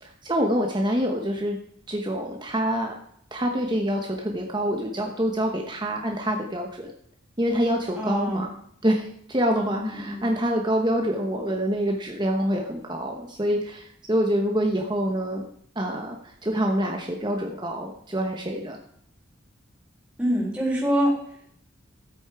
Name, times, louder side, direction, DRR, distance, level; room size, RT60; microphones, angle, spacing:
voice 1, 0.0-1.6 1.9-3.0 3.3-6.9 7.4-8.5 8.8-15.4 15.8-18.8, equal, 20° right, 1 dB, 1.0 m, -26 dB
voice 2, 7.9-8.5 9.7-10.2 20.2-21.1, equal, 5° right, -6 dB, 3.4 m, -25 dB
14.5 x 8.5 x 4.7 m, 0.68 s
head